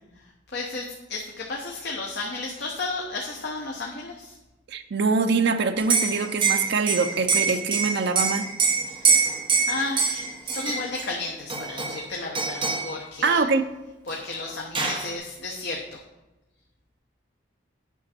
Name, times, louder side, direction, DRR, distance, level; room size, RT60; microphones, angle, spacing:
voice 1, 0.5-4.4 8.9-9.3 9.7-13.4 14.1-15.8, left 3 dB, 60° left, 0 dB, 1.0 m, -33 dB
voice 2, 4.7-8.5 13.2-13.7, right 4 dB, 60° right, 7 dB, 0.6 m, -24 dB
Liquid, 5.8-11.1 11.5-12.1 12.3-12.9 14.1-14.2 14.5-15.1, right 5 dB, 25° right, 1.0 m, -24 dB
9.2 x 5.9 x 4.4 m, 1.0 s
head